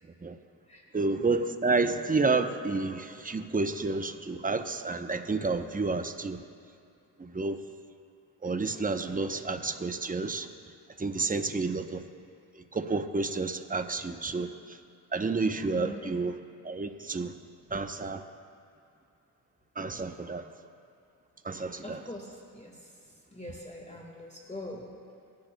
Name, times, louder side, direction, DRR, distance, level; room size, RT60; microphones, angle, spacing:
voice 1, 0.9-6.4 7.2-7.6 8.4-10.5 11.0-12.0 12.6-14.8 15.1-16.4 16.6-17.3 17.7-18.2 19.8-20.4 21.4-22.0, right 3 dB, 20° right, 8 dB, 0.8 m, -30 dB
voice 2, 15.7-16.2 21.8-22.9 23.3-24.9, left 1 dB, 15° left, -1 dB, 1.7 m, -43 dB
20.0 x 10.5 x 2.3 m, 2.5 s
cardioid pair, 55°, 40 cm